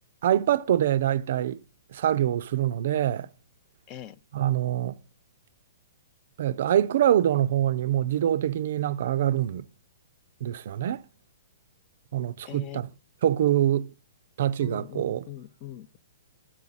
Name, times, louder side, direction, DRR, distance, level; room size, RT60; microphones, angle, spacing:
voice 1, 0.2-1.6 1.9-3.3 4.3-5.0 6.4-9.7 10.4-11.0 12.1-12.9 13.2-13.9 14.4-15.3, right 11 dB, 60° right, 0.4 m, -25 dB
voice 2, 3.9-4.2 12.5-12.8 14.6-16.0, left 12 dB, 35° left, 0.4 m, -41 dB
7.5 x 5.9 x 4.0 m
hypercardioid pair, 145°, 0 cm